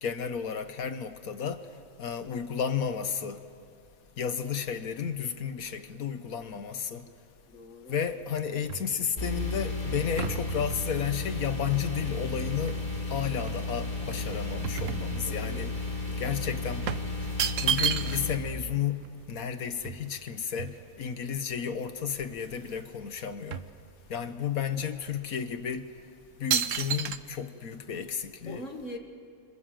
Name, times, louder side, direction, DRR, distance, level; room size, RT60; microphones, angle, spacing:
voice 1, 0.0-1.7 2.0-3.4 4.2-7.0 7.9-12.8 13.1-15.7 16.2-16.9 17.6-19.0 19.3-23.6 24.1-25.9 26.4-28.6, left 7 dB, 80° left, 1.6 m, -32 dB
voice 2, 7.5-8.0 15.3-16.2 28.5-29.0, left 1 dB, 60° left, 2.3 m, -42 dB
sound 1, 7.9-13.0 13.5-15.7 16.0-16.1 16.9-18.4 18.7-18.8 19.0-21.2 21.7-21.8 22.1-22.9 23.1-24.4 24.9-25.1 25.7-26.0 26.5-27.2, right 8 dB, 65° right, 1.2 m, -34 dB
sound 2, 9.2-18.3, left 2 dB, 35° left, 4.5 m, -33 dB
27.0 x 27.0 x 7.6 m
omnidirectional pair, 1.5 m